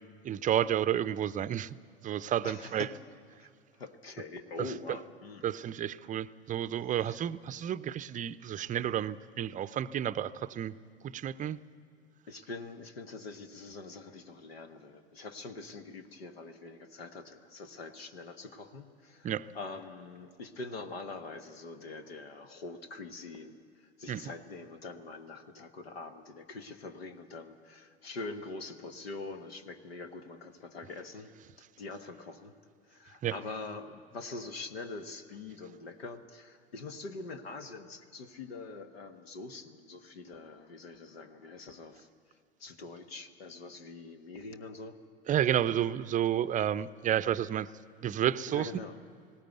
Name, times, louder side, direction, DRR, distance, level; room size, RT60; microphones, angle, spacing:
voice 1, 0.2-1.7 2.0-2.9 5.4-10.7 11.1-11.6 19.2-19.5 24.1-24.2 33.2-33.3 45.3-47.7 48.0-48.7, right 10 dB, 25° right, 15 dB, 0.5 m, -31 dB
voice 2, 2.4-2.9 3.4-3.5 3.7-5.5 7.0-7.2 12.3-31.3 31.8-32.5 32.9-42.1 42.6-45.0 48.5-49.0, left 3 dB, 85° left, 9 dB, 1.3 m, -44 dB
19.5 x 16.5 x 9.2 m, 2.3 s
hypercardioid pair, 80°, 30 cm